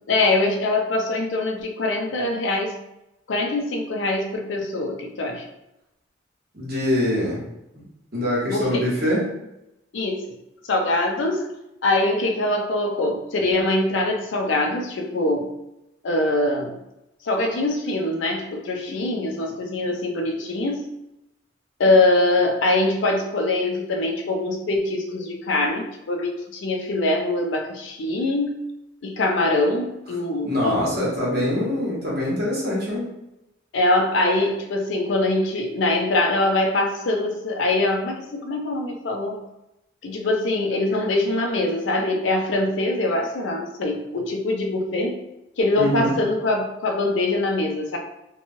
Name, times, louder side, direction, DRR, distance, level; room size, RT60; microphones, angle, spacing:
voice 1, 0.1-2.8 3.3-5.5 8.5-8.9 9.9-10.3 10.7-11.5 11.8-15.5 16.0-16.8 17.2-20.9 21.8-28.6 29.0-30.8 33.7-39.4 40.0-45.2 45.6-48.0, left 2 dB, 75° left, 2 dB, 0.5 m, -23 dB
voice 2, 6.5-7.4 8.1-9.3 30.4-33.0 45.8-46.1, left 1 dB, 50° right, -6 dB, 1.1 m, -23 dB
3.0 x 2.2 x 2.6 m, 0.88 s
head